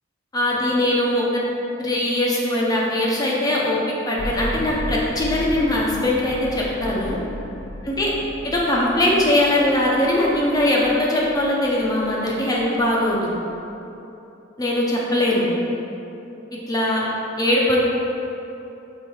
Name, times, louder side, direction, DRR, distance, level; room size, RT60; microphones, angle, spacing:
voice 1, 0.3-1.4 1.8-3.8 4.1-7.2 7.9-8.1 8.4-13.3 14.6-15.5 16.7-17.0 17.4-17.8, left 1 dB, 20° left, -4 dB, 0.8 m, -21 dB
sound 1, 4.2-13.5, left 1 dB, 65° left, 0.7 m, -35 dB
5.6 x 3.9 x 4.6 m, 2.9 s
head